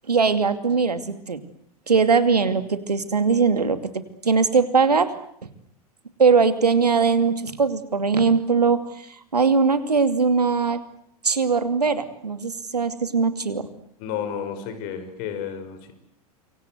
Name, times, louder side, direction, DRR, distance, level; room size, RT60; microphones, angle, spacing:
voice 1, 0.1-1.4 1.9-5.1 6.2-9.1 9.3-10.8 11.2-13.7, right 5 dB, 85° right, 11 dB, 2.6 m, -20 dB
voice 2, 14.0-15.9, left 8 dB, 50° left, 10 dB, 6.3 m, -31 dB
27.5 x 24.5 x 8.1 m, 0.66 s
figure-of-eight pair, 95°, 20 cm